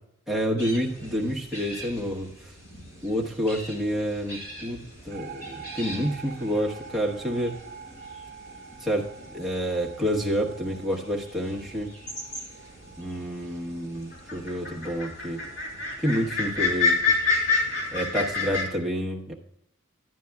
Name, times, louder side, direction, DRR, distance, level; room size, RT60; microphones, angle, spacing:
voice 1, 0.3-2.3 3.0-7.6 8.8-11.9 13.0-15.4 16.0-17.0 17.9-19.3, equal, ahead, -3 dB, 1.1 m, -28 dB
sound 1, 0.6-18.6, left 3 dB, 45° left, 3.2 m, -32 dB
sound 2, 5.1-16.3, right 6 dB, 40° right, 0.7 m, -47 dB
13.0 x 9.2 x 2.3 m, 0.78 s
head